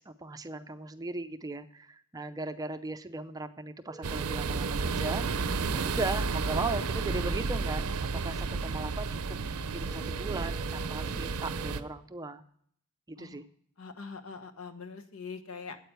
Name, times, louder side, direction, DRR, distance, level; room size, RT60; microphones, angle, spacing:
voice 1, 0.0-12.4 13.1-13.4, right 2 dB, 15° right, 9 dB, 0.5 m, -38 dB
sound 1, 3.9-5.9 9.9-11.9, right 2 dB, ahead, 1.8 m, -47 dB
sound 2, 4.0-11.8, right 4 dB, 85° right, 0.6 m, -32 dB
voice 2, 8.2-8.5 13.2-13.4 13.8-15.8, left 5 dB, 70° left, 7 dB, 1.1 m, -43 dB
9.1 x 8.5 x 6.6 m, 0.63 s
head